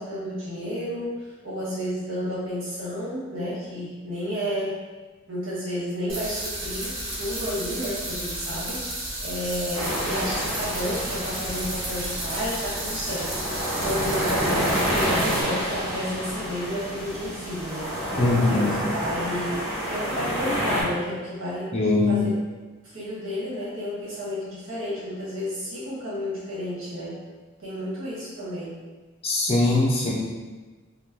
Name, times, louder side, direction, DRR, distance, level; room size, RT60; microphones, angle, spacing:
voice 1, 0.0-4.8 5.3-17.9 18.4-21.7 22.1-22.4 22.8-27.2 27.6-28.7, equal, 70° right, -8 dB, 1.3 m, -31 dB
sound 1, 6.1-15.4, right 1 dB, 45° right, 0.9 m, -33 dB
sound 2, 9.7-20.8, equal, 5° left, 1.2 m, -29 dB
voice 2, 18.2-18.9 21.7-22.2 29.2-30.1, left 2 dB, 30° left, -4 dB, 0.5 m, -21 dB
3.0 x 2.2 x 3.6 m, 1.3 s
head